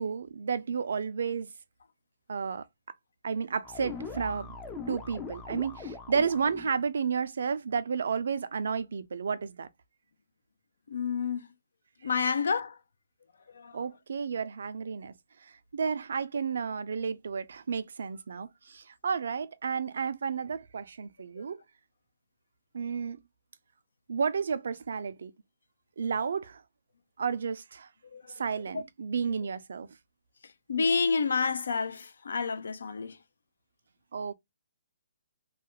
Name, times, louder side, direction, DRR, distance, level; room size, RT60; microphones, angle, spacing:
voice 1, 0.0-1.5 2.3-2.7 3.2-4.5 4.9-9.7 13.7-15.1 15.7-21.6 22.7-23.2 24.1-25.3 26.0-26.6 27.2-27.9 28.4-29.9 34.1-34.3, right 6 dB, 70° right, 0.3 m, -32 dB
sound 1, 3.7-6.8, left 4 dB, 15° left, 0.4 m, -41 dB
voice 2, 10.9-11.5 12.0-12.8 13.5-13.8 21.4-21.5 28.1-28.2 30.7-33.2, left 5 dB, 75° left, 0.4 m, -29 dB
2.3 x 2.1 x 2.9 m
hypercardioid pair, 155°, 0 cm